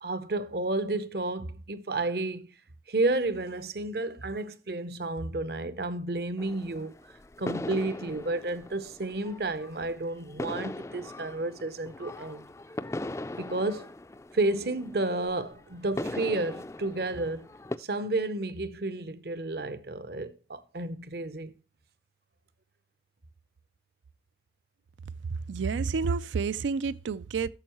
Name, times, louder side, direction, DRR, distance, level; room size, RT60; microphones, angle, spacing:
voice 1, 0.0-2.5 2.9-7.1 7.4-12.4 13.3-13.9 14.3-17.5 17.8-21.5, right 2 dB, 55° right, 0.8 m, -31 dB
sound 1, 6.4-17.8, left 2 dB, 15° left, 0.3 m, -40 dB
voice 2, 25.3-27.5, right 5 dB, 85° right, 0.4 m, -29 dB
11.5 x 7.1 x 3.0 m
head